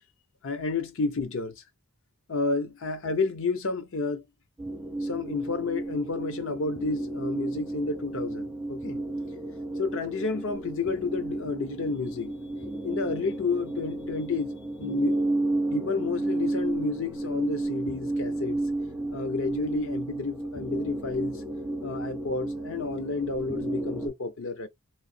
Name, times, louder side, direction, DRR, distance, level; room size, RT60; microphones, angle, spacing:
voice 1, 0.4-1.6 2.3-4.2 5.0-9.0 9.8-12.3 12.8-15.2 15.7-18.6 19.1-21.4 21.8-24.7, left 4 dB, 60° left, 0.7 m, -31 dB
sound 1, 4.6-24.1, right 2 dB, 5° right, 0.4 m, -32 dB
3.0 x 2.8 x 2.6 m
head